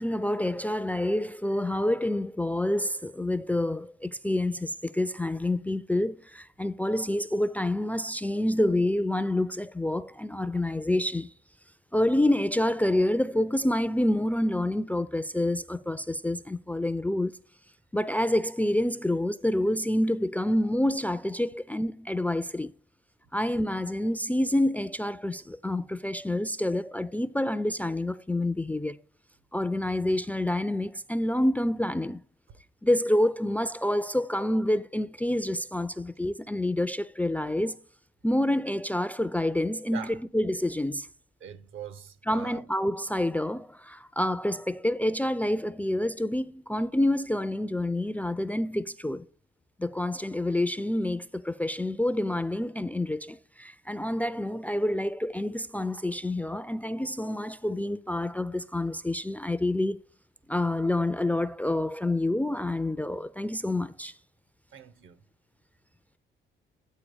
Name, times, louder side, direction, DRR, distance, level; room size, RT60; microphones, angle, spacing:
voice 1, 0.0-11.3 11.9-17.4 17.9-22.7 23.3-29.0 29.5-32.2 32.8-37.8 38.2-41.1 42.3-49.3 49.8-60.0 60.5-64.1, left 1 dB, 5° left, 0.3 m, -28 dB
voice 2, 39.9-40.2 41.4-42.6 64.7-65.2, right 8 dB, 70° right, 1.0 m, -42 dB
8.5 x 4.1 x 5.1 m
cardioid pair, 90°, 21 cm